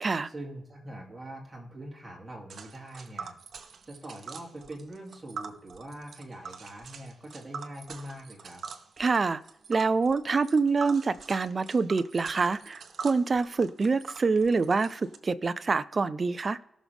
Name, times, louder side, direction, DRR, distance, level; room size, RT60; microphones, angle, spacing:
voice 1, 0.2-3.4 3.8-8.6, right 1 dB, 15° right, -2 dB, 2.9 m, -43 dB
Tick, 2.5-15.2, right 5 dB, 55° right, 0.9 m, -44 dB
voice 2, 9.0-9.4 9.7-16.6, right 4 dB, 35° right, 15 dB, 0.5 m, -26 dB
18.5 x 6.2 x 3.5 m, 0.84 s
wide cardioid pair, 145°, 0 cm